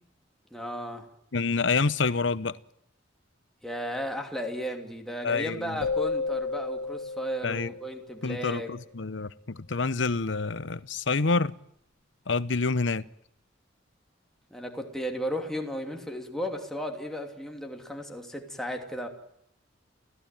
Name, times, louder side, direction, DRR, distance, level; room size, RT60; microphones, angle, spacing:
voice 1, 0.5-1.1 3.6-8.7 14.5-19.1, equal, ahead, 2.9 m, -34 dB
voice 2, 1.3-2.6 5.2-5.8 7.4-7.7 8.2-11.5 12.3-13.0, left 4 dB, 75° left, 0.9 m, -27 dB
sound 1, 5.8-8.4, left 4 dB, 55° left, 2.0 m, -32 dB
30.0 x 15.5 x 9.1 m
head